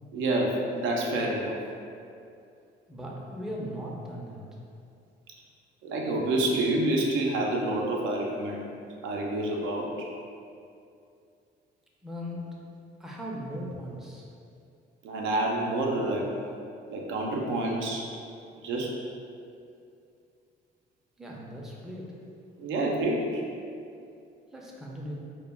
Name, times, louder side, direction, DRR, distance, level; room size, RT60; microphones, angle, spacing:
voice 1, 0.1-1.6 5.8-8.7 9.0-10.1 15.0-16.4 16.9-18.1 18.6-19.0 22.6-23.4, right 1 dB, 80° right, -1 dB, 0.4 m, -28 dB
voice 2, 2.9-4.4 12.0-12.4 13.0-14.3 21.2-22.1 24.5-25.2, equal, ahead, -3 dB, 0.4 m, -38 dB
2.1 x 2.1 x 3.3 m, 2.5 s
cardioid pair, 90°, 20 cm